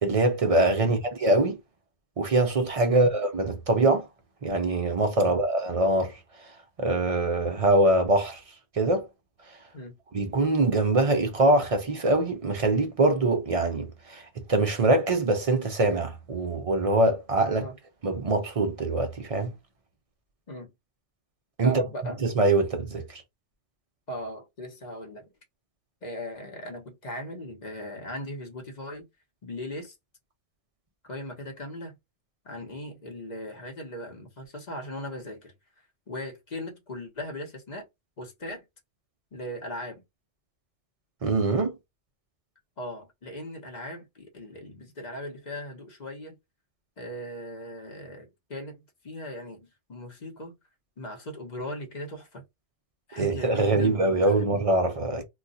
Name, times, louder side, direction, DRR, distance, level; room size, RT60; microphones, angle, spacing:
voice 1, 0.0-1.6 2.2-4.1 4.4-6.1 6.8-8.4 8.8-9.1 10.1-17.7 18.0-19.5 21.6-21.8 22.2-23.2 41.2-41.7 53.2-55.2, right 2 dB, 50° right, 0.4 m, -23 dB
voice 2, 21.6-22.2 24.1-25.3 26.0-29.1 29.4-29.9 31.0-31.9 32.4-35.5 36.1-37.8 38.2-38.6 39.3-40.0 42.8-46.4 47.0-50.5 51.0-52.4 53.1-54.6, equal, 40° left, 1.0 m, -38 dB
2.3 x 2.3 x 3.8 m
omnidirectional pair, 1.2 m